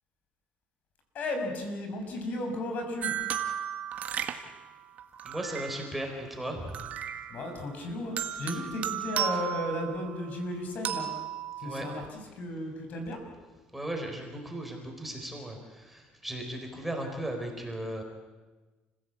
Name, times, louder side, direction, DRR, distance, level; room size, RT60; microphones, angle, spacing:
voice 1, 1.1-3.1 7.3-11.1 11.6-13.2, left 1 dB, 55° left, 4 dB, 6.1 m, -34 dB
sound 1, 3.0-6.1 6.7-7.7 8.2-10.3 10.8-12.1, right 10 dB, 50° right, 1.8 m, -35 dB
voice 2, 5.2-6.9 8.5-8.6 11.6-11.8 13.7-18.0, right 1 dB, 5° right, 2 dB, 4.6 m, -36 dB
29.5 x 16.0 x 8.5 m, 1.3 s
cardioid pair, 115°, 3 cm